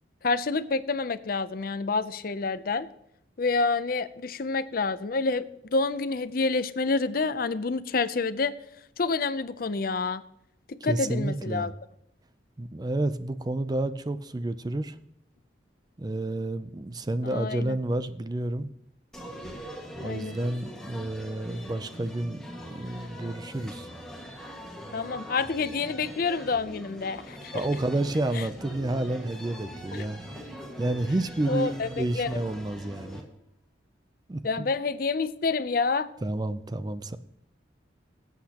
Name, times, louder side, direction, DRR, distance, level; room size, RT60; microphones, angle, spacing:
voice 1, 0.2-2.9 3.4-8.6 9.0-10.2 10.7-11.7 17.2-17.8 20.0-20.4 24.9-27.6 28.3-28.5 29.9-30.1 31.5-32.4 34.4-36.1, left 4 dB, 50° left, 14 dB, 0.5 m, -28 dB
voice 2, 10.9-11.7 12.6-15.0 16.0-18.7 20.0-23.9 27.5-30.2 30.8-33.2 34.3-34.7 36.2-37.2, right 1 dB, 20° right, 13 dB, 0.4 m, -30 dB
sound 1, 19.1-33.2, equal, 5° left, 1.6 m, -42 dB
17.0 x 8.2 x 2.9 m, 0.76 s
head